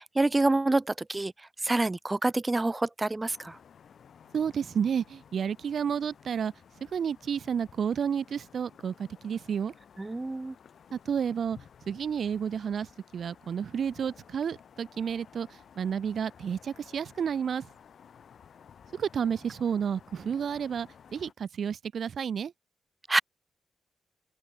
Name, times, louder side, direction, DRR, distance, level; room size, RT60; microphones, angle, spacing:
voice 1, 0.0-1.3 1.6-3.6 10.0-10.5 23.1-23.2, right 2 dB, 25° right, 1.2 m, -27 dB
sound 1, 3.3-21.3, left 7 dB, 65° left, 6.5 m, -55 dB
voice 2, 4.3-6.5 6.9-9.7 10.9-11.6 11.9-12.9 13.1-15.5 15.8-17.6 19.0-22.5, right 7 dB, 65° right, 1.1 m, -31 dB
open air
supercardioid pair, 45°, 0 cm